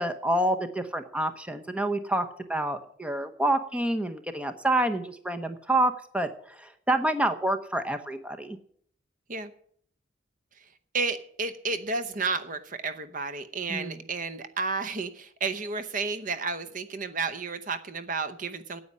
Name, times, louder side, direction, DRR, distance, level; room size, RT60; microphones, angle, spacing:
voice 1, 0.0-8.6 13.7-14.0, right 1 dB, 5° right, 8 dB, 0.8 m, -28 dB
voice 2, 10.9-18.8, right 4 dB, 45° right, 12 dB, 0.8 m, -32 dB
9.6 x 8.6 x 9.5 m, 0.62 s
head